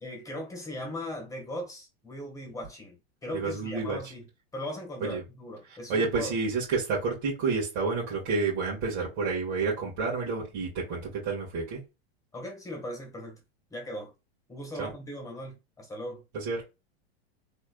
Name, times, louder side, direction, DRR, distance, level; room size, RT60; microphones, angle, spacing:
voice 1, 0.0-6.3 12.3-13.4 13.7-14.1 14.5-16.2, left 1 dB, 10° left, 1.6 m, -39 dB
voice 2, 3.3-4.0 5.0-5.2 5.9-11.8 14.8-14.9 16.3-16.6, right 4 dB, 60° right, 2.1 m, -29 dB
3.6 x 3.2 x 2.3 m
hypercardioid pair, 120°, 31 cm